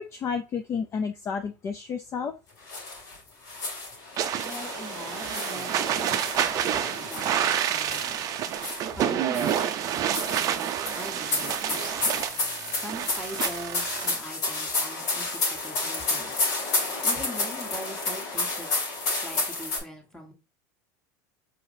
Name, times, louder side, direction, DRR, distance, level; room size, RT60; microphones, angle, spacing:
voice 1, 0.0-2.3, left 6 dB, 30° left, 7 dB, 0.4 m, -31 dB
sound 1, 2.7-3.2 3.5-9.0 9.3-19.8, left 3 dB, 70° left, 2.6 m, -31 dB
sound 2, 4.2-14.1, right 10 dB, 40° right, 0.5 m, -29 dB
voice 2, 4.4-8.2 9.0-12.1 12.8-16.4 17.0-18.7 19.2-20.3, equal, 5° left, 2 dB, 1.3 m, -42 dB
4.8 x 4.1 x 2.7 m, 0.29 s
supercardioid pair, 130°, 10 cm